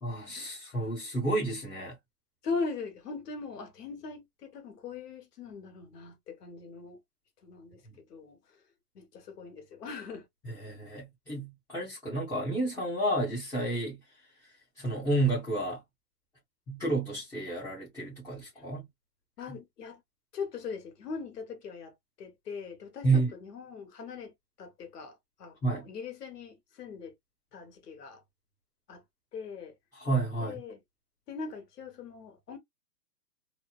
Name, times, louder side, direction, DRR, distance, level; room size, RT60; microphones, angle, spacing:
voice 1, 0.0-2.0 7.9-8.0 10.4-14.0 14.8-15.8 16.7-18.9 19.5-19.6 23.0-23.3 25.6-25.8 29.9-30.6, right 2 dB, 5° left, 0.5 m, -30 dB
voice 2, 2.4-7.0 7.4-7.8 8.1-8.6 8.9-10.3 18.5-18.6 19.4-20.0 20.3-27.1 27.5-28.2 28.9-29.0 29.3-29.7 30.4-30.8 31.3-32.6, left 4 dB, 80° left, 1.3 m, -40 dB
2.9 x 2.0 x 2.3 m
hypercardioid pair, 145°, 47 cm